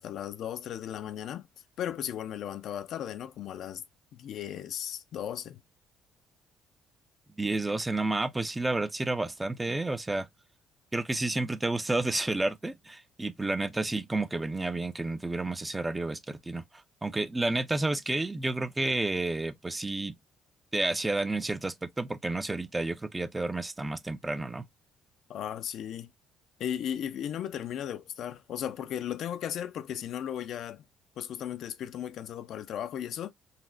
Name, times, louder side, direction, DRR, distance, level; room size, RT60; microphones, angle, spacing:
voice 1, 0.0-1.5 1.8-3.8 4.1-5.6 25.3-26.1 26.6-30.8 31.2-33.3, left 10 dB, 65° left, 0.4 m, -36 dB
voice 2, 7.4-10.3 10.9-16.6 17.0-20.1 20.7-24.7, right 2 dB, 15° right, 0.5 m, -30 dB
4.0 x 2.1 x 2.5 m
supercardioid pair, 80°, 0 cm